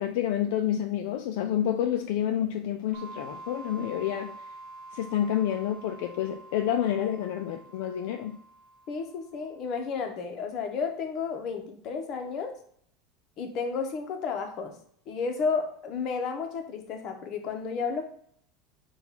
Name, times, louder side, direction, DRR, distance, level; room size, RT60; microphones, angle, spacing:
voice 1, 0.0-4.3 4.9-8.4, left 10 dB, 70° left, 5 dB, 0.3 m, -29 dB
sound 1, 2.9-9.4, right 2 dB, 60° right, 0.6 m, -47 dB
voice 2, 8.9-12.5 13.4-14.8 15.1-18.0, left 5 dB, 45° left, 4 dB, 0.8 m, -32 dB
4.2 x 2.3 x 4.0 m, 0.63 s
supercardioid pair, 125°, 0 cm